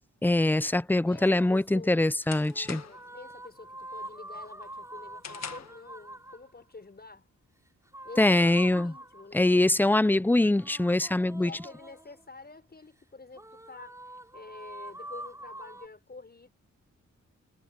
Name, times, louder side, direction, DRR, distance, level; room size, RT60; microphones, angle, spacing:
voice 1, 0.2-2.8 8.2-8.9 9.3-11.5, left 2 dB, 5° left, 0.6 m, -23 dB
voice 2, 1.0-2.1 2.8-7.3 8.0-9.5 11.4-14.0 14.3-16.5, left 3 dB, 30° left, 6.6 m, -48 dB
sound 1, 1.0-1.7 2.3-6.5 7.9-9.4 10.5-12.2 13.3-15.9, right 1 dB, 10° right, 7.2 m, -45 dB
sound 2, 1.4-3.2 3.6-3.9 4.3-5.9, left 7 dB, 60° left, 1.7 m, -44 dB
cardioid pair, 90°, 30 cm